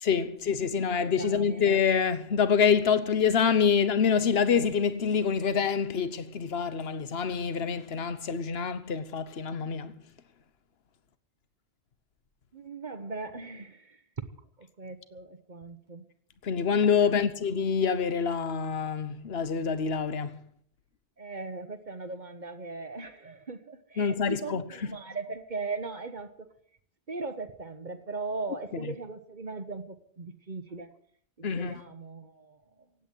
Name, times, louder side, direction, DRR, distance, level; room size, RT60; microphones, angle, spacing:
voice 1, 0.0-9.9 16.4-20.4 24.0-24.6 31.4-31.8, left 6 dB, 75° left, 1.3 m, -26 dB
voice 2, 0.9-1.6 12.5-14.0 14.6-16.1 17.0-17.3 21.2-26.5 27.1-31.0 31.4-32.9, right 3 dB, 45° right, 1.3 m, -39 dB
16.0 x 9.2 x 9.1 m
omnidirectional pair, 1.1 m